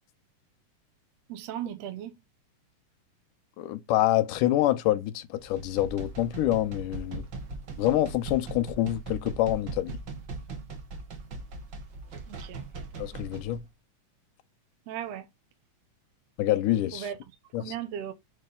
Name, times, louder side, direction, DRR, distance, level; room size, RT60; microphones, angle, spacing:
voice 1, 1.3-2.2 12.3-12.7 14.9-15.3 16.9-17.2 17.6-18.1, right 10 dB, 75° right, 1.5 m, -36 dB
voice 2, 3.6-7.3 7.8-10.0 13.0-13.6 16.4-17.1 17.5-17.7, left 14 dB, 90° left, 2.2 m, -26 dB
sound 1, 5.4-13.6, right 3 dB, 55° right, 1.3 m, -40 dB
6.8 x 3.2 x 5.3 m
omnidirectional pair, 3.7 m